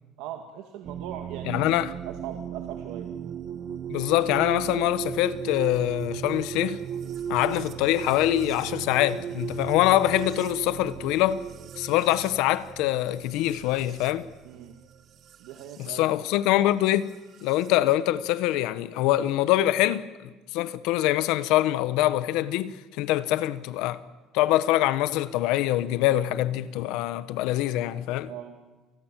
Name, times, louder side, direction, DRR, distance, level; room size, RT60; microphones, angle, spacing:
voice 1, 0.2-1.6 2.0-3.1 14.4-14.8 15.4-16.2 28.3-28.6, right 10 dB, 80° right, 1.9 m, -39 dB
sound 1, 0.8-15.9 17.1-17.7, right 8 dB, 40° right, 1.0 m, -36 dB
voice 2, 1.5-1.9 3.9-6.8 7.3-11.4 11.8-14.3 15.8-17.1 17.4-20.1 20.5-24.0 24.3-28.3, left 14 dB, 75° left, 1.1 m, -24 dB
28.5 x 20.0 x 7.4 m
cardioid pair, 175°, 0 cm